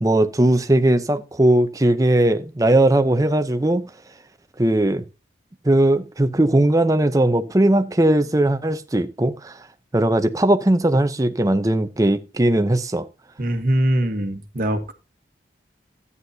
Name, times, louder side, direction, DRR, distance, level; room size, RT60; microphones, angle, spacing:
voice 1, 0.0-3.8 4.6-5.0 5.6-9.6 9.9-13.1, right 1 dB, 20° right, 0.6 m, -18 dB
voice 2, 13.4-14.9, right 1 dB, 50° right, 1.2 m, -22 dB
13.0 x 9.6 x 2.7 m
head